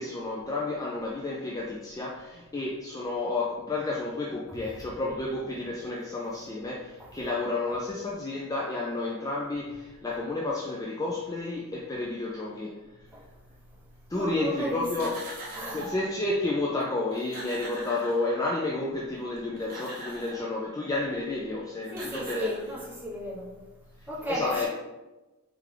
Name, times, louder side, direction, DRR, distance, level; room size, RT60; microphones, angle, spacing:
voice 1, 0.0-12.8 14.1-15.2 15.7-22.5 24.3-24.7, left 2 dB, 15° left, -3 dB, 0.3 m, -31 dB
voice 2, 14.1-15.1 15.5-15.9 21.9-23.5 24.1-24.7, equal, 10° right, -7 dB, 1.1 m, -34 dB
sound 1, 14.8-16.1 16.8-16.9 17.1-18.7 19.4-20.5 21.5-21.6 21.9-23.1, right 1 dB, 40° right, 0.9 m, -42 dB
3.4 x 3.3 x 3.7 m, 1.1 s
head